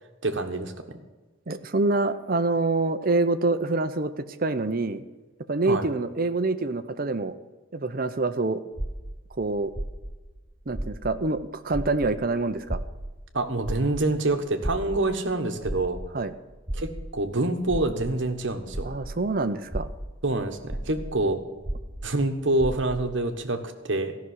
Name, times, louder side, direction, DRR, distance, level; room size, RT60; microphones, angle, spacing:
voice 1, 0.2-0.7 5.6-5.9 13.3-16.0 16.7-18.9 20.2-21.4 22.0-24.2, right 2 dB, 60° right, 7 dB, 1.3 m, -26 dB
voice 2, 1.5-5.0 5.5-7.3 7.7-8.6 9.4-9.7 10.7-12.8 16.1-16.3 18.8-19.9, right 2 dB, 45° right, 10 dB, 0.8 m, -26 dB
sound 1, 8.8-11.4 11.7-19.2 19.6-23.1, right 1 dB, 10° right, 0.7 m, -35 dB
14.5 x 6.2 x 9.6 m, 1.2 s
head